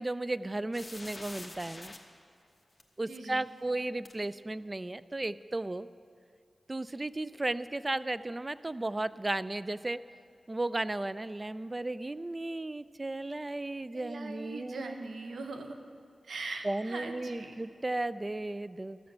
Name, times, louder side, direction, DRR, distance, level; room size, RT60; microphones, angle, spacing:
voice 1, 0.0-1.9 3.0-5.9 6.7-10.0 10.5-15.1 16.6-19.0, right 2 dB, 30° right, 16 dB, 0.3 m, -35 dB
sound 1, 0.7-2.0 2.8-2.9 4.0-4.1, left 2 dB, 30° left, 1.1 m, -45 dB
voice 2, 3.0-3.5 13.9-15.8 16.2-17.6, right 3 dB, 85° right, 5 dB, 0.9 m, -41 dB
13.0 x 6.6 x 6.8 m, 2.3 s
cardioid pair, 55°, 0 cm